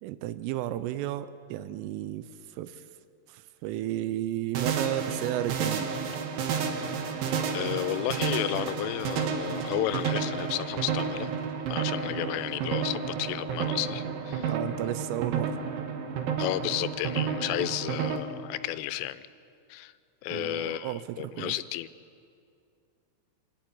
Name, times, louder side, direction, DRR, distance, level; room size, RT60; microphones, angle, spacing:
voice 1, 0.0-2.9 3.3-5.9 7.0-7.2 14.5-15.6 20.3-21.6, right 12 dB, 85° right, 13 dB, 3.2 m, -33 dB
sound 1, 4.5-18.2, right 6 dB, 70° right, 2.3 m, -31 dB
voice 2, 7.5-11.3 11.7-14.5 16.4-19.3 19.7-19.9 20.2-21.9, left 14 dB, 90° left, 14 dB, 3.2 m, -32 dB
26.0 x 11.5 x 8.6 m, 2.4 s
omnidirectional pair, 5.6 m